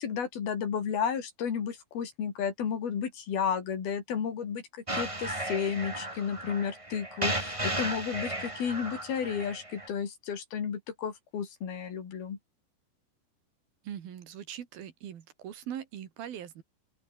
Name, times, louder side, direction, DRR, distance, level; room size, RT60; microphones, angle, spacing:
voice 1, 0.0-12.4, left 7 dB, 85° left, 5.5 m, -32 dB
sound 1, 4.9-9.9, right 1 dB, 10° right, 3.2 m, -35 dB
voice 2, 13.8-16.6, right 9 dB, 80° right, 4.1 m, -41 dB
open air
omnidirectional pair, 4.2 m